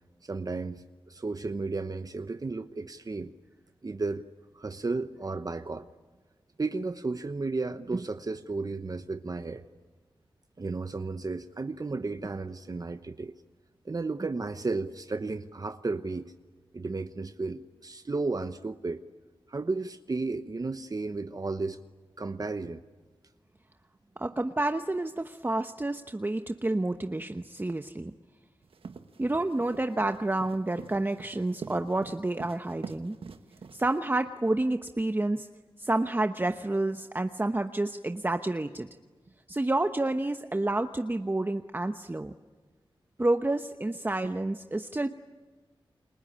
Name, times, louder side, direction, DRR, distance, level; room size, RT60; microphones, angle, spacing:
voice 1, 0.2-3.3 3.8-4.3 4.5-5.9 6.6-9.6 10.6-13.3 13.8-16.3 16.7-19.0 19.5-21.8 22.2-22.8 44.2-44.3, right 3 dB, 40° right, 10 dB, 1.0 m, -33 dB
voice 2, 24.2-28.1 29.2-33.2 33.7-35.5 35.8-38.9 39.5-42.3 43.2-45.1, right 2 dB, 20° right, 7 dB, 1.0 m, -29 dB
sound 1, 28.6-34.0, right 5 dB, 80° right, 1.4 m, -44 dB
29.5 x 22.5 x 8.8 m, 1.4 s
cardioid pair, 60°, 9 cm